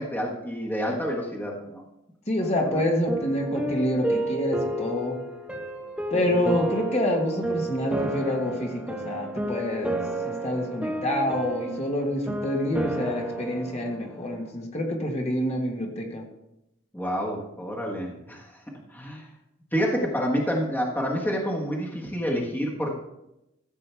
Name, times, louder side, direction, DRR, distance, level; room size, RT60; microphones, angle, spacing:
voice 1, 0.0-1.8 2.6-2.8 6.1-6.5 16.9-18.6 18.9-19.3 19.7-22.9, equal, 10° left, -2 dB, 1.5 m, -28 dB
voice 2, 2.3-5.2 6.1-10.0 10.2-16.3, left 1 dB, 35° left, 0 dB, 1.5 m, -27 dB
sound 1, 2.4-14.5, right 1 dB, 5° right, 1.0 m, -32 dB
14.5 x 7.5 x 3.4 m, 0.88 s
head